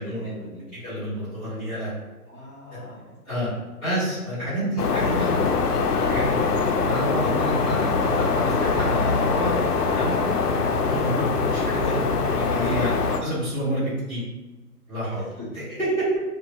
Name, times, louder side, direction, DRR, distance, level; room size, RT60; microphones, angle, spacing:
voice 1, 0.0-0.6 2.3-3.6 15.1-15.5, left 2 dB, 20° right, -11 dB, 0.7 m, -42 dB
voice 2, 0.8-2.0 2.7-2.8 3.2-3.5 3.8-5.5 5.9-6.5 6.7-9.5 9.9-10.1 10.7-12.0 12.3-12.9 13.2-14.2 14.9-15.2 15.5-16.1, equal, 10° left, -15 dB, 1.5 m, -29 dB
sound 1, 4.8-13.2, left 4 dB, 80° left, 0.5 m, -23 dB
2.7 x 2.3 x 2.7 m, 1.1 s
hypercardioid pair, 160°, 47 cm